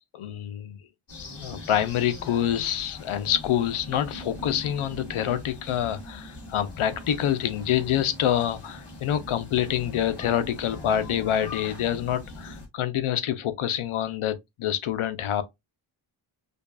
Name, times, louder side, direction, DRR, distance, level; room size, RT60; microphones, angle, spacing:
voice 1, 0.1-0.8 1.4-15.4, left 10 dB, 90° left, 0.7 m, -26 dB
sound 1, 1.1-12.7, left 2 dB, 55° left, 2.4 m, -41 dB
5.1 x 2.3 x 2.3 m
wide cardioid pair, 95°, 48 cm